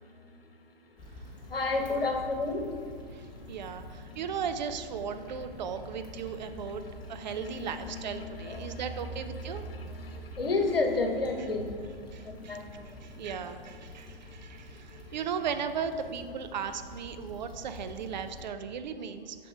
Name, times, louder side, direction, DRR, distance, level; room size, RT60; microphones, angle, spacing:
voice 1, 0.0-4.2 6.2-13.4 13.7-15.2, left 3 dB, 75° left, 4 dB, 1.2 m, -35 dB
Stream / Traffic noise roadway noise / Trickle dribble, 1.0-18.5, left 1 dB, 15° left, 1.3 m, -47 dB
voice 2, 3.5-6.8 7.1-9.6 12.1-12.6 13.0-19.5, right 7 dB, 50° right, 9 dB, 0.6 m, -36 dB
7.2 x 6.0 x 4.6 m, 2.1 s
figure-of-eight pair, 110°, 29 cm